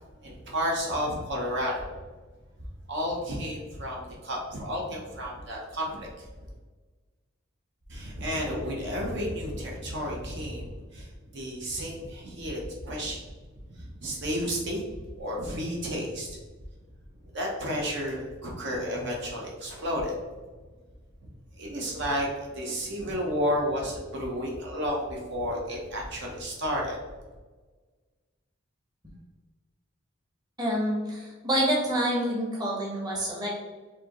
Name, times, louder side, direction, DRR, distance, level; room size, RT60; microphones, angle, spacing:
voice 1, 0.2-1.9 2.9-6.3 7.9-11.1 11.3-13.2 13.8-14.8 15.2-16.4 17.3-20.2 21.6-27.0, equal, 60° right, -2 dB, 0.9 m, -32 dB
voice 2, 30.6-33.6, equal, 20° right, -4 dB, 1.0 m, -27 dB
4.6 x 2.8 x 3.0 m, 1.3 s
head